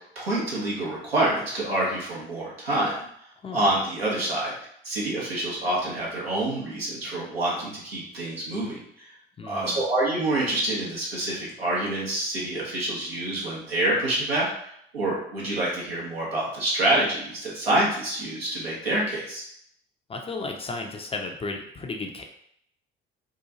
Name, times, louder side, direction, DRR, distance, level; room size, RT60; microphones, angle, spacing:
voice 1, 0.2-3.0 3.5-4.5 4.8-9.1 9.4-14.5 14.9-19.4, right 1 dB, 85° right, -5 dB, 0.8 m, -27 dB
voice 2, 9.4-9.8 20.1-22.2, left 3 dB, 20° left, 3 dB, 0.4 m, -34 dB
2.8 x 2.3 x 2.7 m, 0.70 s
figure-of-eight pair, 50°, 30 cm